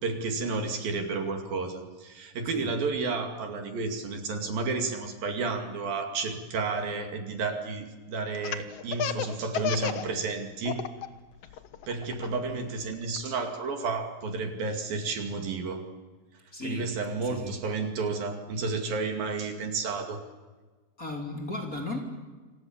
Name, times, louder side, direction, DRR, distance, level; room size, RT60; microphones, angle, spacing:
voice 1, 0.0-10.8 11.9-15.8 16.6-20.2, right 4 dB, 60° right, 5 dB, 4.1 m, -31 dB
Laughter, 8.3-10.1 10.4-11.1 11.4-13.2, left 8 dB, 90° left, 1.3 m, -31 dB
voice 2, 16.5-16.9 17.2-17.6 21.0-22.0, left 2 dB, 20° left, 1 dB, 3.5 m, -35 dB
28.5 x 27.5 x 7.3 m, 1.3 s
omnidirectional pair, 4.7 m